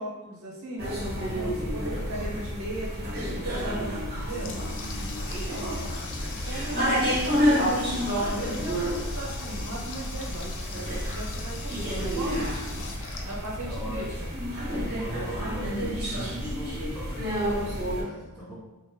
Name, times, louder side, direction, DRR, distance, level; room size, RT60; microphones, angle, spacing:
voice 1, 0.0-1.1 1.3-4.6 5.4-8.1 8.3-12.7 13.2-14.3, right 1 dB, 70° right, -3 dB, 0.9 m, -38 dB
sound 1, 0.8-18.0, equal, 45° right, 1.2 m, -30 dB
voice 2, 1.2-2.4 3.6-5.3 13.6-14.3 14.8-18.5, equal, ahead, -13 dB, 0.8 m, -39 dB
Water tap faucet, 3.9-14.0, left 4 dB, 60° left, 0.4 m, -42 dB
2.9 x 2.1 x 3.3 m, 1.1 s
head